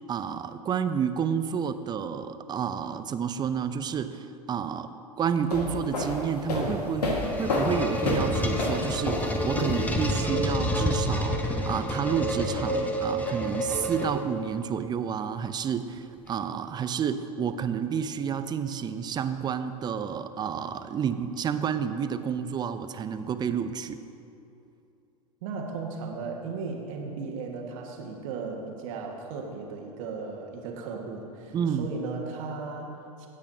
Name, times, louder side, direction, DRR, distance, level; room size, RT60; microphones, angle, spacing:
voice 1, 0.1-24.0 31.5-31.9, right 7 dB, 20° right, 11 dB, 0.5 m, -30 dB
sound 1, 5.4-10.2, left 1 dB, 80° left, 1.7 m, -30 dB
sound 2, 7.0-14.5, equal, 10° left, 1.0 m, -29 dB
voice 2, 25.4-33.3, right 4 dB, 55° right, 1 dB, 1.6 m, -36 dB
16.5 x 8.4 x 2.8 m, 2.7 s
hypercardioid pair, 90°, 20 cm